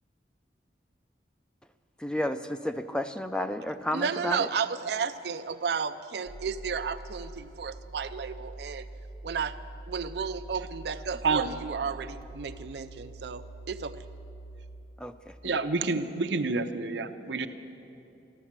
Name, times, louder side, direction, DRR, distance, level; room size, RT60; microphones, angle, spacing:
voice 1, 2.0-4.5 15.0-15.3, left 1 dB, 5° left, 9 dB, 0.4 m, -32 dB
voice 2, 3.9-8.9 9.2-9.6 9.9-14.0, right 6 dB, 65° right, 9 dB, 0.4 m, -33 dB
sound 1, 6.3-14.8, right 2 dB, 65° left, 1.5 m, -44 dB
voice 3, 15.4-17.5, right 4 dB, 85° right, 8 dB, 0.8 m, -28 dB
14.0 x 13.0 x 7.4 m, 2.9 s
head